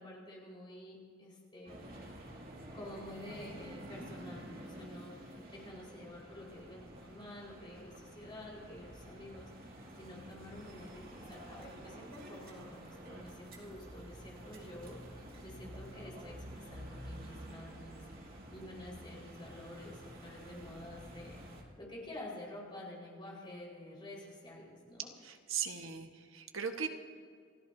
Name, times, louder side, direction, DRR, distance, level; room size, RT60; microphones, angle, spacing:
voice 1, 0.0-1.9 2.7-21.4 21.8-25.1, left 1 dB, 25° left, -4 dB, 4.6 m, -49 dB
sound 1, 1.7-21.6, right 1 dB, 45° right, 2.4 m, -50 dB
voice 2, 25.2-26.9, right 7 dB, 75° right, 5 dB, 1.4 m, -38 dB
28.5 x 14.0 x 2.7 m, 2.2 s
head